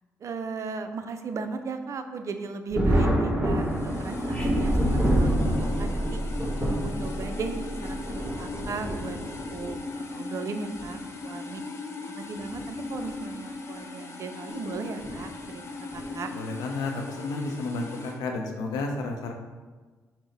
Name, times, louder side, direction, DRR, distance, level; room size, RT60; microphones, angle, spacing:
voice 1, 0.2-6.2 6.8-9.2 9.5-11.6 12.1-16.3, right 4 dB, 55° right, 8 dB, 0.4 m, -37 dB
Thunder, 2.7-9.8 10.8-10.9 12.3-12.6 13.0-13.1 15.0-15.2 15.9-16.3, right 1 dB, 15° right, 1.1 m, -27 dB
sound 1, 3.5-18.2, left 3 dB, 45° left, 0.6 m, -39 dB
sound 2, 4.3-8.9, equal, 15° left, 1.2 m, -33 dB
voice 2, 16.4-19.3, left 3 dB, 85° left, 3 dB, 0.5 m, -31 dB
5.8 x 2.0 x 3.8 m, 1.3 s
supercardioid pair, 65°, 6 cm